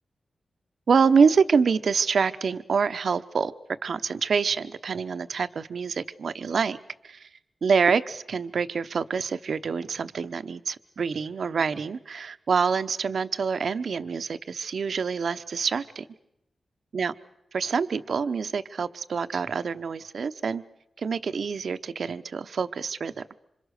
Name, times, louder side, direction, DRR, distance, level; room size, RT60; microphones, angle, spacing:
voice 1, 0.9-3.5 3.8-6.8 7.0-7.3 7.6-16.1 16.9-17.1 17.5-20.6 21.0-23.4, right 5 dB, 65° right, 13 dB, 0.9 m, -26 dB
27.0 x 26.5 x 6.6 m, 0.83 s
wide cardioid pair, 120°, 0 cm